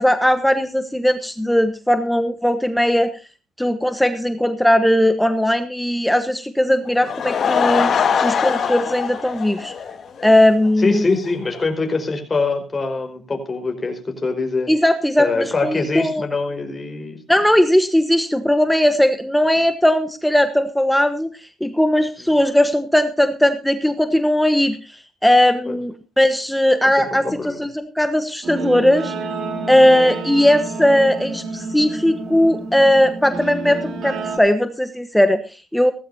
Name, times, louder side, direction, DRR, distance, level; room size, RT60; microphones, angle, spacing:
voice 1, 0.0-3.2 3.6-7.9 8.2-9.7 10.2-11.0 14.7-16.2 17.3-21.3 21.6-29.1 29.7-35.9, left 1 dB, 5° left, 9 dB, 1.2 m, -18 dB
Laughter / Crowd, 6.9-10.3 10.6-10.7 11.3-11.4 11.6-11.7, left 7 dB, 55° left, 2.8 m, -22 dB
voice 2, 10.8-14.7 15.2-17.2 25.7-25.8 27.0-27.6, left 3 dB, 25° left, 3 dB, 4.9 m, -23 dB
Guitar, 28.4-34.4, right 3 dB, 70° right, 3.4 m, -29 dB
17.0 x 15.0 x 2.7 m, 0.32 s
cardioid pair, 90°, 0 cm